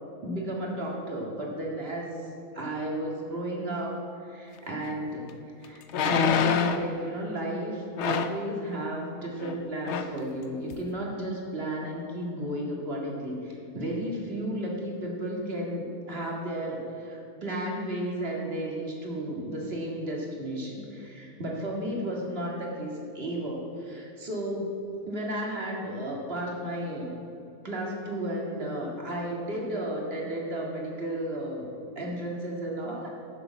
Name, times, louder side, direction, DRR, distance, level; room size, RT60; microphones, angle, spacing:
voice 1, 0.2-5.2 5.6-24.7 25.1-27.2 27.6-31.7 32.0-33.1, right 1 dB, 40° right, -2 dB, 2.2 m, -33 dB
sound 1, 4.9-5.0 5.9-6.9 8.0-8.4 9.4-9.6 9.8-10.2 10.7-10.8, left 6 dB, 60° left, 0.8 m, -26 dB
11.0 x 6.9 x 7.1 m, 2.9 s
omnidirectional pair, 1.6 m